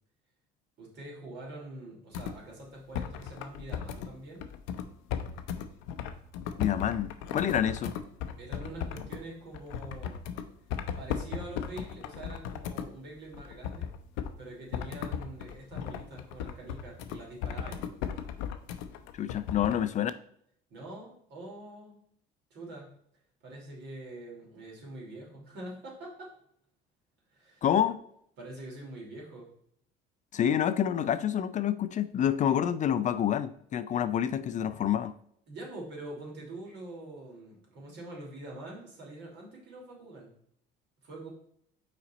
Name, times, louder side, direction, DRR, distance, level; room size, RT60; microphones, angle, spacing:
voice 1, 0.8-4.5 8.4-10.2 11.0-13.9 14.4-17.8 20.7-22.0 22.5-22.9 23.4-26.3 27.3-27.7 28.4-29.5 35.5-40.3 41.0-41.3, right 2 dB, 65° right, 2.7 m, -45 dB
sound 1, 2.1-2.4 2.9-4.1 4.4-9.2 9.5-10.4 10.7-12.9 13.3-14.3 14.7-19.8, left 8 dB, 80° left, 0.6 m, -36 dB
voice 2, 6.6-7.9 19.1-20.1 27.6-28.0 30.3-35.1, left 9 dB, 40° left, 0.4 m, -28 dB
5.8 x 4.1 x 4.0 m
supercardioid pair, 95°, 20 cm